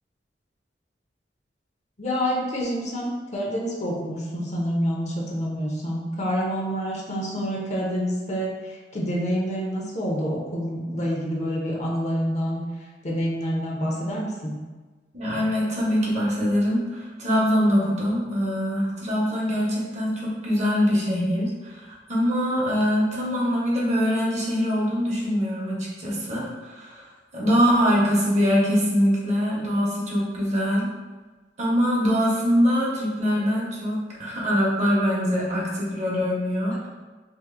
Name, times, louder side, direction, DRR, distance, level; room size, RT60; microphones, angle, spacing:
voice 1, 2.0-12.6 13.0-14.5, equal, 40° left, -2 dB, 0.7 m, -27 dB
voice 2, 15.1-27.1 27.3-30.9 31.6-36.7, equal, 40° right, -4 dB, 0.9 m, -23 dB
2.8 x 2.5 x 3.7 m, 1.3 s
head